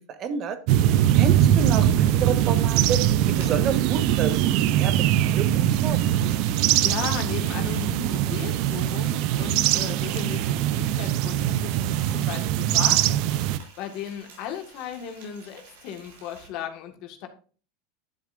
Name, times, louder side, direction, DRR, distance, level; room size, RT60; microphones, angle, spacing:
voice 1, 0.2-0.6 1.1-3.0 3.3-4.4 4.7-6.1, right 7 dB, 45° right, 10 dB, 1.3 m, -30 dB
sound 1, 0.7-13.6, right 12 dB, 60° right, 0.5 m, -22 dB
Frying (food), 1.6-16.5, right 4 dB, 85° right, 3.3 m, -50 dB
voice 2, 6.8-17.3, left 8 dB, 60° left, 5 dB, 1.6 m, -36 dB
10.5 x 7.3 x 2.5 m, 0.39 s
supercardioid pair, 120°, 0 cm